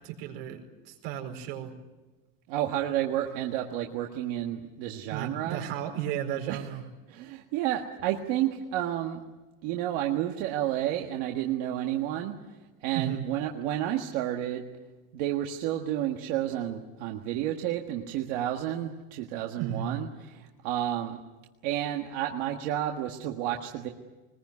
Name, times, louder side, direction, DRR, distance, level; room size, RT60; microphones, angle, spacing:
voice 1, 0.0-1.7 5.1-6.8 12.9-13.3 19.5-20.0, right 9 dB, 75° right, 2 dB, 4.7 m, -34 dB
voice 2, 2.5-5.7 6.5-6.8 7.1-9.2 9.6-12.6 12.8-14.6 15.1-21.2 21.6-23.9, right 12 dB, 55° right, 2 dB, 1.7 m, -31 dB
22.5 x 20.5 x 9.6 m, 1.2 s
cardioid pair, 180°, 29 cm